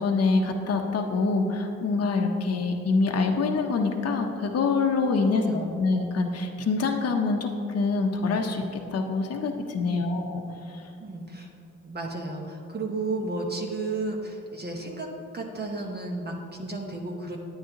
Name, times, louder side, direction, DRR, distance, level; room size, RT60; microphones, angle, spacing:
voice 1, 0.0-10.8, left 4 dB, 55° left, 3 dB, 0.8 m, -25 dB
voice 2, 5.2-5.8 9.8-10.2 11.0-11.5 11.8-15.1 15.3-17.4, right 2 dB, 35° right, 0 dB, 1.1 m, -33 dB
9.6 x 9.3 x 2.9 m, 2.7 s
cardioid pair, 80°, 30 cm